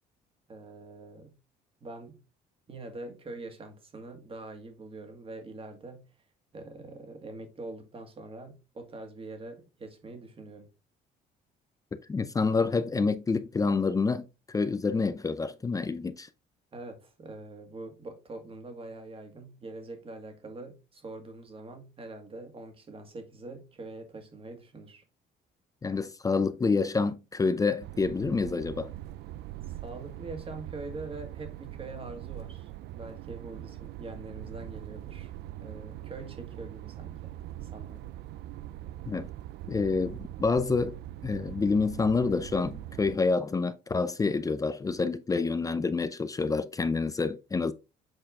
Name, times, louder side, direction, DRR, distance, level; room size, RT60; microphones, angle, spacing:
voice 1, 0.5-1.3 1.8-2.2 2.7-6.0 6.5-10.7 16.7-25.0 29.7-35.3 35.6-38.0, right 2 dB, 35° right, 2.1 m, -44 dB
voice 2, 12.1-16.3 25.8-28.9 39.1-39.3 39.7-40.9 41.2-47.7, left 4 dB, 20° left, 0.5 m, -28 dB
sound 1, 27.8-43.2, right 13 dB, 75° right, 0.4 m, -42 dB
7.9 x 4.4 x 3.6 m
cardioid pair, 110°, 17 cm